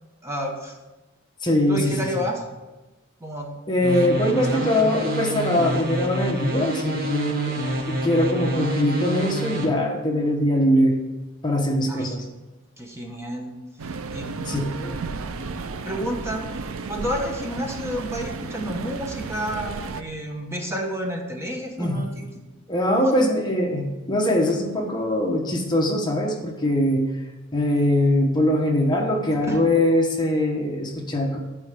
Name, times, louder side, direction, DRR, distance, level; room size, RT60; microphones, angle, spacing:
voice 1, 0.2-0.8 1.7-2.5 3.2-3.6 4.0-4.6 11.9-12.2 12.8-13.5 14.1-14.7 15.7-16.4 16.9-22.3 22.9-23.2 29.3-29.6, equal, 15° right, 1 dB, 1.1 m, -30 dB
voice 2, 1.4-2.1 3.7-11.0 11.4-12.2 14.4-15.0 21.8-22.0 22.7-27.0 27.5-31.4, left 1 dB, 20° left, 0 dB, 1.1 m, -22 dB
sound 1, 3.8-9.6, right 1 dB, 45° right, 1.7 m, -28 dB
sound 2, 13.8-20.0, right 4 dB, 75° right, 0.6 m, -33 dB
11.0 x 4.6 x 6.8 m, 1.1 s
head